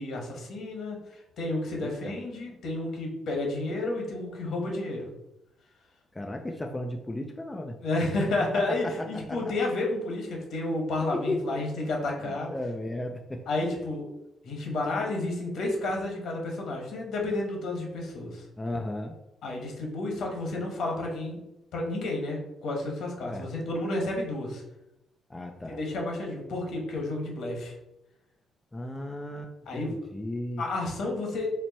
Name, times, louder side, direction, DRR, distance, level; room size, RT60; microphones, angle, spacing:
voice 1, 0.0-5.1 7.8-12.5 13.5-14.1 14.4-18.4 19.4-21.4 21.7-24.6 25.6-27.7 29.7-29.9 30.6-31.5, left 2 dB, 70° left, 0 dB, 1.3 m, -31 dB
voice 2, 1.7-2.1 2.5-2.6 6.1-7.8 8.4-9.5 11.1-11.6 12.2-13.4 18.6-19.1 23.2-23.5 25.3-25.8 28.7-30.6, left 1 dB, 15° left, 3 dB, 0.4 m, -35 dB
4.5 x 2.1 x 4.1 m, 0.87 s
cardioid pair, 90°, 0 cm